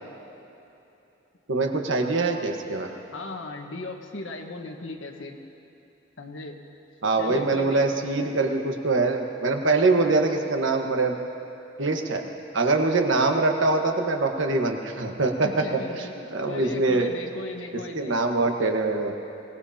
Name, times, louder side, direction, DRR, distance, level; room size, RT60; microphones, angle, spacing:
voice 1, 1.5-3.0 7.0-11.2 11.8-12.2 12.5-15.5 16.3-17.1 17.9-19.1, right 3 dB, 85° right, 3 dB, 1.4 m, -23 dB
voice 2, 3.1-5.4 6.2-6.6 7.2-7.8 15.4-18.2, left 2 dB, 80° left, 2 dB, 1.4 m, -37 dB
24.5 x 18.5 x 2.9 m, 2.9 s
head